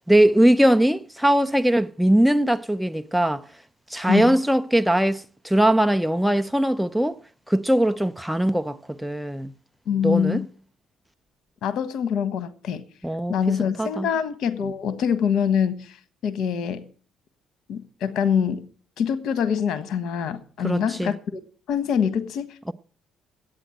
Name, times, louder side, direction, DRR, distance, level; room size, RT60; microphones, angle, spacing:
voice 1, 0.1-3.4 3.9-7.2 7.5-9.5 10.0-10.4 13.0-13.4 13.8-14.1 20.6-21.2, right 1 dB, ahead, 0.6 m, -20 dB
voice 2, 4.1-4.4 9.9-10.5 11.6-12.8 13.3-16.0 16.2-16.9 17.7-18.7 19.0-21.4 21.7-22.5, left 7 dB, 70° left, 1.3 m, -24 dB
11.0 x 9.0 x 7.7 m
cardioid pair, 85°, 0 cm